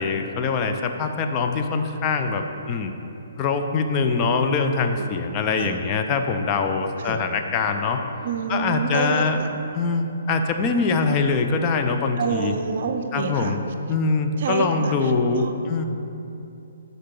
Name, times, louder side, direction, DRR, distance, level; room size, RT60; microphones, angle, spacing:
voice 1, 0.0-2.9 3.4-8.0 8.5-9.4 9.7-12.5 13.1-13.6 13.9-15.8, left 4 dB, 25° left, 5 dB, 0.4 m, -23 dB
voice 2, 8.2-9.6 12.2-13.6 14.4-15.5, right 5 dB, 55° right, 6 dB, 0.5 m, -28 dB
9.3 x 3.9 x 3.8 m, 2.8 s
hypercardioid pair, 145°, 0 cm